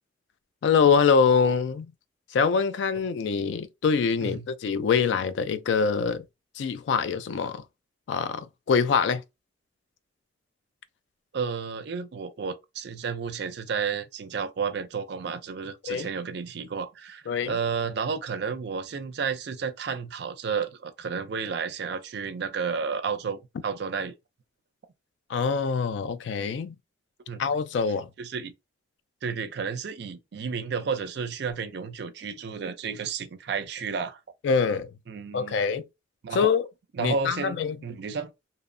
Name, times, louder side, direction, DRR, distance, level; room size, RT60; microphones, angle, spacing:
voice 1, 0.6-1.9 2.3-6.3 6.6-7.6 8.1-9.2 15.9-16.1 17.3-17.6 25.3-26.8 27.4-28.1 34.4-34.9 35.3-35.9 36.3-36.7 37.0-37.8, left 5 dB, 70° left, 0.3 m, -24 dB
voice 2, 11.3-24.1 27.3-27.4 28.2-28.5 29.2-34.2 35.1-35.6 36.2-36.5 36.9-37.6 37.8-38.3, right 5 dB, 60° right, 0.4 m, -32 dB
2.7 x 2.0 x 2.5 m
head